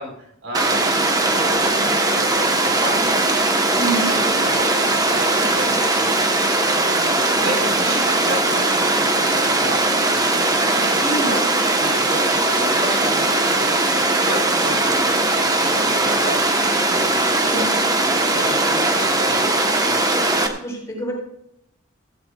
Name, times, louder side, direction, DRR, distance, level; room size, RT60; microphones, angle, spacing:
voice 1, 0.0-3.4 3.8-5.3 5.5-11.4 11.8-17.6 18.0-20.1, equal, 65° right, -1 dB, 5.4 m, -33 dB
Water, 0.5-20.5, right 2 dB, 15° right, 1.3 m, -19 dB
voice 2, 3.7-4.1 7.3-8.0 11.0-11.4 17.4-17.9 20.5-21.1, right 1 dB, 15° left, -2 dB, 6.3 m, -28 dB
16.0 x 15.5 x 2.5 m, 0.77 s
head